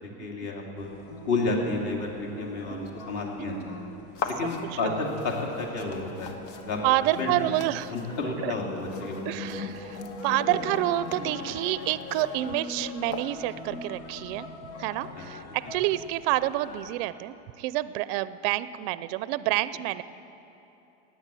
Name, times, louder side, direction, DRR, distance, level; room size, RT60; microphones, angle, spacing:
voice 1, 0.2-0.9 1.3-3.5 4.3-6.3 6.7-6.8 7.2-7.5 7.9-9.2 9.5-9.6 15.2-15.3, left 3 dB, 45° left, 0 dB, 2.7 m, -31 dB
sound 1, 0.8-16.9, left 3 dB, 80° left, 1.5 m, -41 dB
voice 2, 3.4-3.7 4.8-5.0 6.8-7.9 8.4-8.5 9.3-14.5 14.8-20.0, right 16 dB, 55° right, 16 dB, 0.5 m, -28 dB
sound 2, 4.1-13.7, left 4 dB, 60° left, 1.5 m, -42 dB
17.0 x 9.8 x 7.5 m, 3.0 s
supercardioid pair, 150°, 36 cm